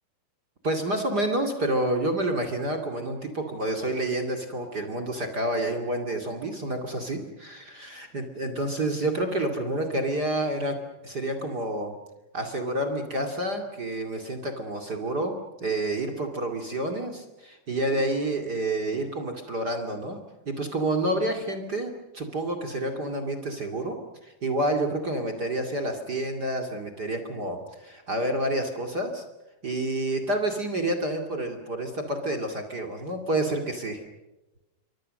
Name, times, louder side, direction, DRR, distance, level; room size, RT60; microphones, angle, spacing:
voice 1, 0.6-10.8 11.0-11.9 12.3-20.2 20.5-29.2 29.6-34.0, right 1 dB, 30° right, 4 dB, 2.0 m, -29 dB
28.5 x 24.5 x 6.6 m, 1.0 s
omnidirectional pair, 5.0 m